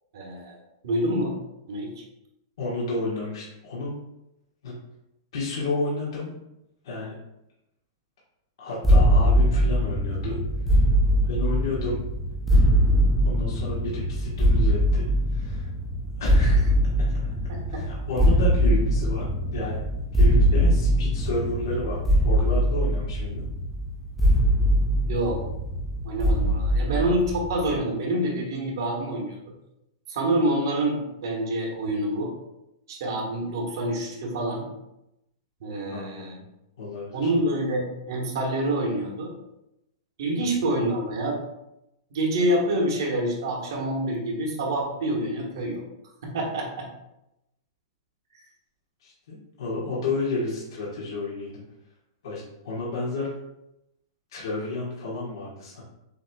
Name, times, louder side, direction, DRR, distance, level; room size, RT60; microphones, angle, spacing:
voice 1, 0.1-0.6 0.8-1.4 1.7-2.0 17.5-17.8 25.1-25.4 26.0-29.4 30.1-32.3 32.9-34.7 35.6-36.4 37.1-39.3 40.2-41.4 42.1-45.8 46.2-46.9, right 1 dB, 60° right, 0 dB, 1.3 m, -27 dB
voice 2, 2.6-3.9 4.6-4.8 5.3-6.4 6.8-7.1 8.6-10.4 11.2-12.0 13.2-15.0 15.3-15.7 16.2-16.6 17.0-17.1 17.7-19.2 19.5-19.8 20.1-22.0 22.2-23.4 35.9-36.4 36.8-37.3 40.4-40.5 49.0-51.6 52.2-53.3 54.3-55.8, left 2 dB, 70° left, -6 dB, 1.4 m, -31 dB
sound 1, 8.8-27.7, equal, 5° left, 0.3 m, -22 dB
6.9 x 2.9 x 2.3 m, 0.88 s
supercardioid pair, 175°, 3 cm